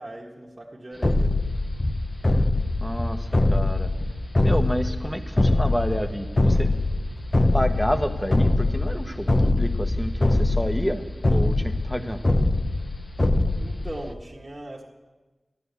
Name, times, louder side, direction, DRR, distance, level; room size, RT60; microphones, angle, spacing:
voice 1, 0.0-1.4 2.7-2.9 4.2-4.4 7.1-7.2 13.5-14.8, right 1 dB, 35° right, -5 dB, 1.7 m, -40 dB
sound 1, 1.0-14.1, left 2 dB, 30° left, 0.7 m, -23 dB
voice 2, 2.8-3.9 4.4-6.8 7.5-12.2, equal, 5° left, 7 dB, 1.1 m, -29 dB
13.5 x 11.0 x 8.2 m, 1.2 s
wide cardioid pair, 85°, 0 cm